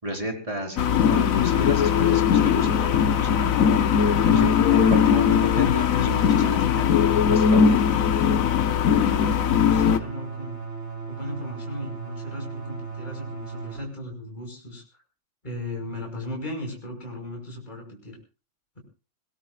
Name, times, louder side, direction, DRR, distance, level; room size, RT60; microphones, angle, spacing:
voice 1, 0.0-3.5 4.3-6.9 7.3-7.7, equal, 15° right, 1 dB, 4.4 m, -32 dB
sound 1, 0.8-10.0, left 7 dB, 55° left, 1.1 m, -20 dB
voice 2, 9.1-10.6 11.1-14.8 15.4-18.2, left 1 dB, 20° left, 1 dB, 5.7 m, -36 dB
sound 2, 9.7-13.8, right 4 dB, 30° right, 4.6 m, -36 dB
26.0 x 19.0 x 2.4 m, 0.33 s
omnidirectional pair, 2.2 m